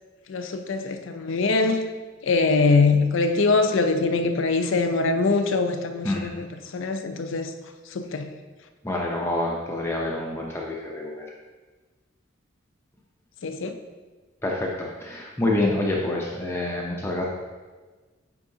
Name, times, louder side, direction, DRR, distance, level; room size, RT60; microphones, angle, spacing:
voice 1, 0.3-1.9 2.2-7.5 7.8-8.3 13.4-13.8, left 3 dB, 70° left, 7 dB, 0.5 m, -23 dB
voice 2, 8.8-11.3 14.4-17.2, left 1 dB, 10° left, -2 dB, 0.5 m, -27 dB
8.2 x 4.6 x 2.7 m, 1.3 s
head